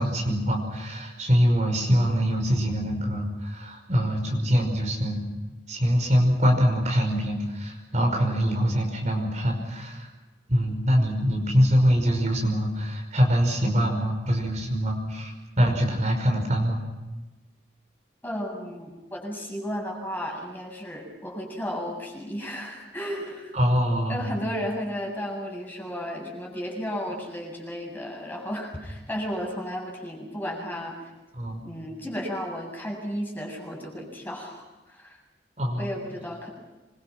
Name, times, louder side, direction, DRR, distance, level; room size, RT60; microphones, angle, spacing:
voice 1, 0.0-5.2 5.7-10.1 10.5-16.8 23.5-24.4 31.3-31.6 35.6-35.9, equal, 40° right, 2 dB, 5.4 m, -24 dB
voice 2, 18.2-23.6 24.1-31.0 31.6-35.2 35.8-36.5, equal, 10° left, 0 dB, 7.5 m, -34 dB
27.0 x 24.5 x 6.0 m, 1.1 s
head